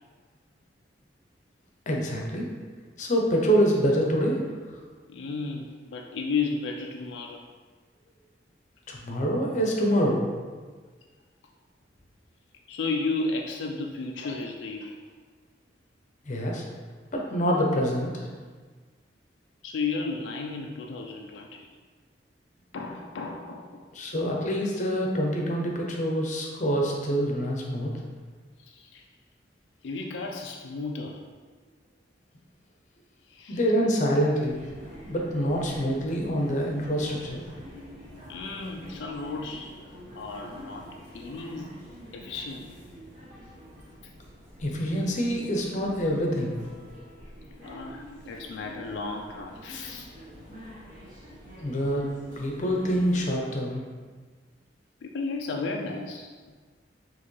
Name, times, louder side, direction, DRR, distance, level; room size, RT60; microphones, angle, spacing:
voice 1, 1.9-2.5 3.0-4.4 8.9-10.2 16.3-16.6 17.1-18.3 23.9-27.9 33.5-34.6 35.0-37.4 44.6-46.6 51.6-52.0 52.4-53.8, equal, 45° left, -1 dB, 0.7 m, -26 dB
voice 2, 5.1-7.4 12.7-15.0 19.6-21.7 22.7-23.8 28.6-29.0 29.8-31.2 33.3-33.6 38.3-39.7 40.2-41.7 42.1-42.7 47.6-50.1 55.0-56.3, left 4 dB, 85° left, 1 dB, 0.4 m, -33 dB
sound 1, 34.4-53.3, equal, 45° right, 1.1 m, -46 dB
4.3 x 3.1 x 3.1 m, 1.5 s
head